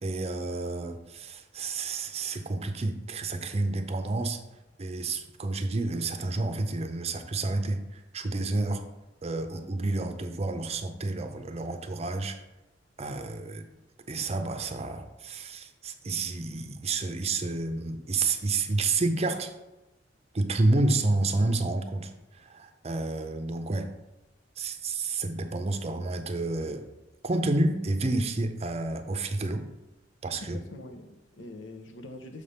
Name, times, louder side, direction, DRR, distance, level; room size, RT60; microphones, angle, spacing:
voice 1, 0.0-4.4 4.8-8.8 9.2-12.4 13.0-13.7 14.1-19.5 20.3-23.9 24.6-26.8 27.2-29.6 30.2-30.6, right 2 dB, 35° right, 7 dB, 0.6 m, -30 dB
voice 2, 30.4-32.4, left 2 dB, 80° left, 5 dB, 0.8 m, -43 dB
6.5 x 3.4 x 5.5 m, 1.0 s
head